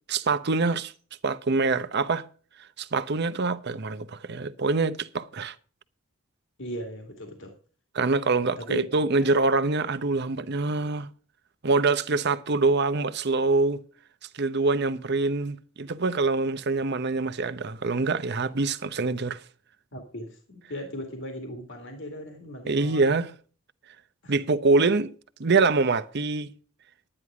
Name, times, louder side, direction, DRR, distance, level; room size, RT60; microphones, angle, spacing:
voice 1, 0.1-0.9 1.2-2.3 2.8-5.5 7.9-11.1 11.6-13.8 14.3-19.4 22.7-23.3 24.3-25.1 25.4-26.5, right 3 dB, 55° right, 0.8 m, -25 dB
voice 2, 6.6-7.5 8.6-9.3 19.9-23.2 24.2-24.4, equal, 60° left, 2.2 m, -38 dB
11.0 x 9.9 x 4.8 m
head